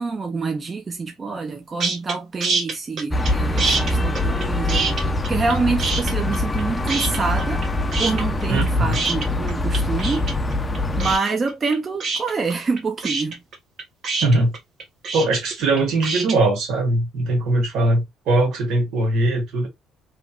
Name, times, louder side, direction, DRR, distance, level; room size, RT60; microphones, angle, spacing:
voice 1, 0.0-7.6 8.0-10.3 10.6-13.4, right 4 dB, 30° right, 0.6 m, -26 dB
sound 1, 1.8-2.1 2.4-3.3 3.6-5.5 5.8-6.6 6.9-7.7 7.9-16.4, right 4 dB, 55° right, 1.1 m, -25 dB
sound 2, 3.1-11.2, left 1 dB, 15° left, 0.5 m, -23 dB
voice 2, 8.5-9.0 14.2-14.5 15.1-19.7, right 2 dB, 70° right, 1.6 m, -20 dB
3.1 x 3.0 x 2.3 m
cardioid pair, 100°, 0 cm